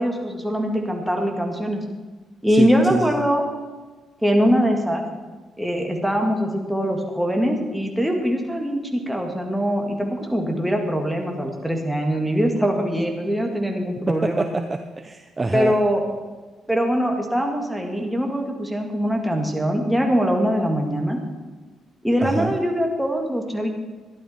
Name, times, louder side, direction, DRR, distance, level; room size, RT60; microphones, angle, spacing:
voice 1, 0.0-1.8 2.4-3.4 4.2-5.1 5.6-14.5 15.5-16.0 16.7-21.2 22.0-23.8, equal, ahead, 2 dB, 2.0 m, -22 dB
voice 2, 2.5-3.1 14.1-15.7 22.2-22.5, right 3 dB, 25° right, 7 dB, 0.6 m, -25 dB
13.0 x 11.0 x 4.3 m, 1.3 s
cardioid pair, 90°, 0 cm